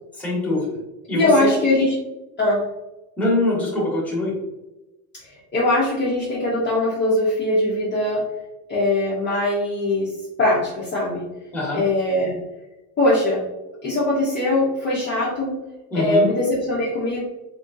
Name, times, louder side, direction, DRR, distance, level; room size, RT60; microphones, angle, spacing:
voice 1, 0.1-0.8 1.1-1.5 3.2-4.3 11.5-11.8 15.9-16.3, left 2 dB, 5° left, -6 dB, 1.3 m, -23 dB
voice 2, 1.1-2.0 2.4-2.6 5.5-8.2 8.7-10.1 10.4-11.2 11.7-12.4 13.0-13.4 13.8-15.6 15.9-17.2, left 1 dB, 25° left, -7 dB, 0.9 m, -21 dB
3.7 x 3.4 x 2.6 m, 1.0 s
cardioid pair, 145°, 43 cm